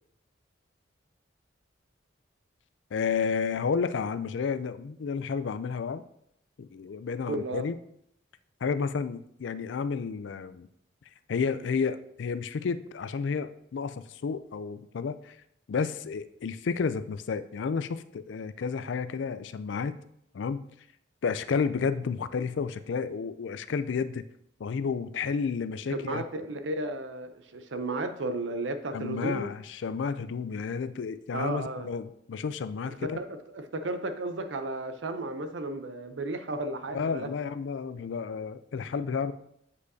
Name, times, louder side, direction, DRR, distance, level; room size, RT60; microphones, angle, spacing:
voice 1, 2.9-6.0 6.6-7.8 8.6-10.7 11.3-15.4 15.7-20.0 20.3-20.6 21.2-24.2 24.6-26.2 28.9-33.2 36.9-39.3, left 5 dB, 70° left, 13 dB, 0.4 m, -31 dB
voice 2, 7.3-7.7 25.9-29.5 31.3-31.9 32.9-37.3, right 2 dB, 75° right, 8 dB, 0.6 m, -34 dB
8.2 x 5.2 x 2.7 m, 0.73 s
head